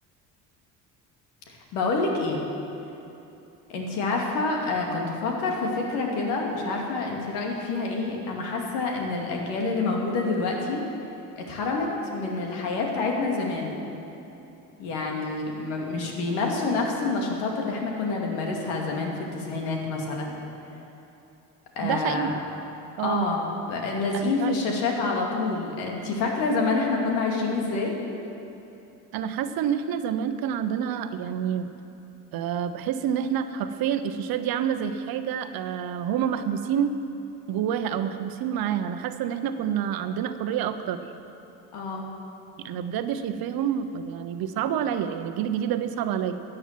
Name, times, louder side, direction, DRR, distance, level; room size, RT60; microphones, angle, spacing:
voice 1, 1.5-2.4 3.7-10.8 11.4-13.8 14.8-20.3 21.8-22.3 23.0-27.9 41.7-42.1, left 3 dB, 85° left, 0 dB, 2.6 m, -27 dB
voice 2, 21.8-22.4 23.0-23.3 24.1-24.8 29.1-31.7 32.3-36.9 37.5-41.0 42.6-46.3, right 9 dB, 65° right, 9 dB, 1.0 m, -28 dB
13.5 x 9.1 x 7.6 m, 2.9 s
supercardioid pair, 90°, 39 cm